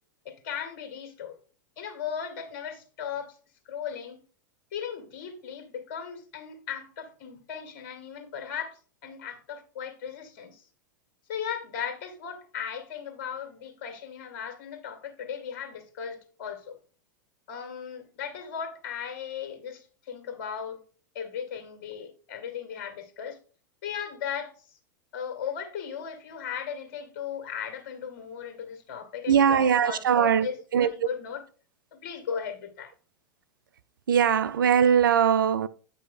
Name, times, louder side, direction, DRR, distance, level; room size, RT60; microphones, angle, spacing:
voice 1, 0.2-1.3 1.8-3.4 3.7-4.2 4.7-10.6 11.3-16.8 17.5-20.8 21.1-23.4 23.8-24.5 25.1-30.5 30.8-31.4 31.9-32.9, left 7 dB, 55° left, 2.2 m, -37 dB
voice 2, 29.3-30.9 34.1-35.7, right 8 dB, 80° right, 0.6 m, -21 dB
9.1 x 5.8 x 3.8 m
hypercardioid pair, 100°, 11 cm